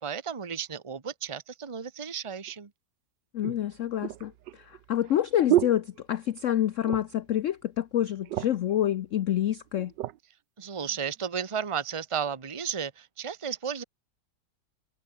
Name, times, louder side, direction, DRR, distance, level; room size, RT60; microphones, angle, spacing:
voice 1, 0.0-2.7 10.6-13.8, right 7 dB, 20° right, 1.1 m, -33 dB
sound 1, 2.5-2.6 3.4-6.5 6.8-7.3 7.6-7.7 8.0-8.7 9.4-10.2 10.8-11.0, right 14 dB, 75° right, 1.4 m, -31 dB
voice 2, 3.3-9.9, left 11 dB, 70° left, 0.7 m, -27 dB
omnidirectional pair, 2.0 m